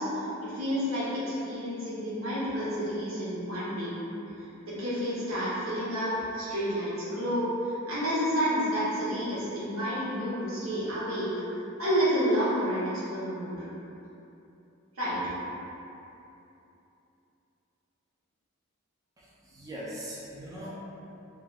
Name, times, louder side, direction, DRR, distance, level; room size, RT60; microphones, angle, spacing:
voice 1, 0.0-3.9 4.7-11.3 11.8-13.7 15.0-15.2, equal, 85° right, -9 dB, 0.9 m, -30 dB
voice 2, 19.2-20.8, equal, 15° right, -8 dB, 0.3 m, -41 dB
3.3 x 2.2 x 2.3 m, 2.9 s
head